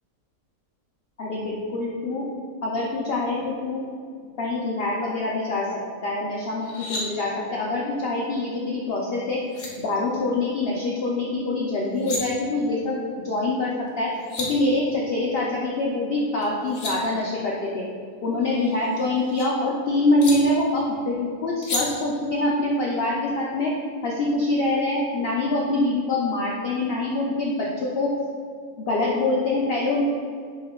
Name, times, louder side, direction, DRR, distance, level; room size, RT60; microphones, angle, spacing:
voice 1, 1.2-2.3 2.6-3.9 4.4-5.7 6.0-9.4 9.8-14.1 14.4-17.9 18.2-23.7 24.0-28.1 28.8-30.0, left 2 dB, 80° left, -3 dB, 0.5 m, -25 dB
sound 1, 6.5-7.0 9.1-9.2 9.5-9.7 11.8-12.2 13.9-14.0 14.1-14.5 16.4-16.9 18.4-19.5 20.2-20.3 21.6-21.8, left 2 dB, 50° left, 0.9 m, -32 dB
5.5 x 3.5 x 2.2 m, 2.1 s
omnidirectional pair, 1.5 m